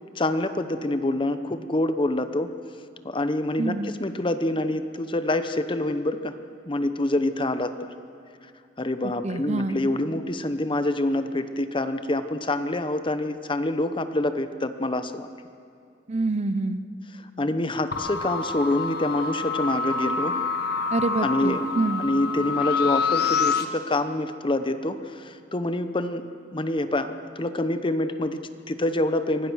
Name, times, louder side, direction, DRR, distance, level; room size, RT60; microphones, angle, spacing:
voice 1, 0.2-2.5 3.0-6.3 6.7-7.9 8.8-15.3 17.4-20.4 21.2-21.6 22.0-26.3 26.5-29.5, left 1 dB, 30° left, 10 dB, 0.9 m, -26 dB
voice 2, 3.6-3.9 9.2-9.8 16.1-16.8 20.9-22.0, right 3 dB, 40° right, 12 dB, 0.7 m, -26 dB
sound 1, 17.9-23.7, left 5 dB, 60° left, 1.3 m, -27 dB
24.5 x 18.0 x 6.3 m, 2.4 s
head